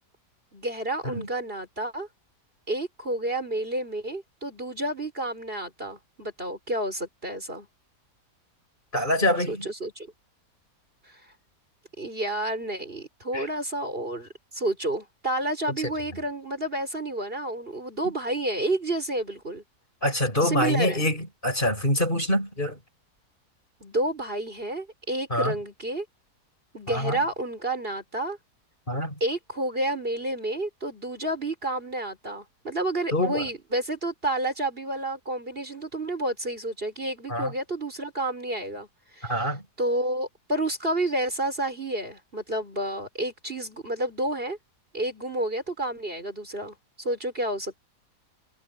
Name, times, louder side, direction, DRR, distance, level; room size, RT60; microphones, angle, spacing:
voice 1, 0.5-2.1 2.7-7.7 9.5-10.1 11.1-11.2 12.0-19.6 20.4-21.0 23.8-26.1 26.7-28.4 29.2-38.9 39.1-39.5 39.8-44.6 44.9-47.8, right 1 dB, 35° right, 5.6 m, -30 dB
voice 2, 8.9-9.7 13.3-13.4 20.0-22.8 25.3-25.5 26.9-27.2 28.9-29.1 33.1-33.4 37.3-37.5 39.2-39.6, left 1 dB, 30° left, 7.0 m, -25 dB
omnidirectional pair, 1.7 m